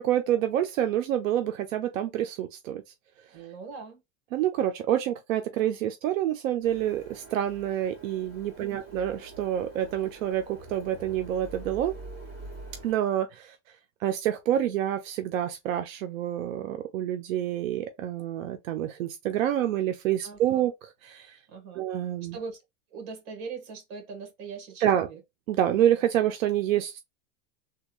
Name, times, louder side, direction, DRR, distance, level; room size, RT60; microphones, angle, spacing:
voice 1, 0.0-2.8 4.3-11.9 12.8-13.6 14.0-21.4 21.8-22.4 24.8-25.1 25.5-27.0, right 11 dB, 90° right, 0.7 m, -27 dB
voice 2, 3.3-4.0 8.6-8.9 20.2-20.7 21.5-21.9 22.2-22.6 22.9-25.2, right 5 dB, 55° right, 1.7 m, -41 dB
Printer, 6.6-12.9, right 2 dB, 25° right, 2.0 m, -45 dB
3.4 x 2.3 x 3.1 m
supercardioid pair, 145°, 39 cm